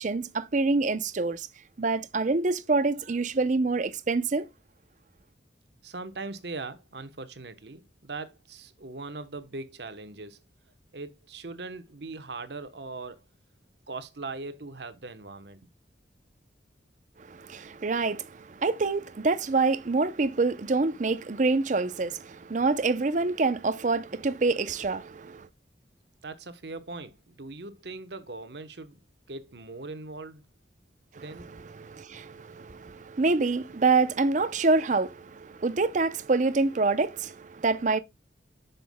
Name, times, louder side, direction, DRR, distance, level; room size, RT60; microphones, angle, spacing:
voice 1, 0.0-1.5 1.8-4.5 17.3-25.5 31.2-31.3 31.8-38.0, right 3 dB, 45° right, 0.6 m, -26 dB
voice 2, 5.8-10.4 10.9-13.2 13.9-15.6 26.2-29.0 29.3-30.4 31.1-31.7, right 3 dB, 65° right, 1.0 m, -40 dB
9.3 x 6.8 x 2.2 m
head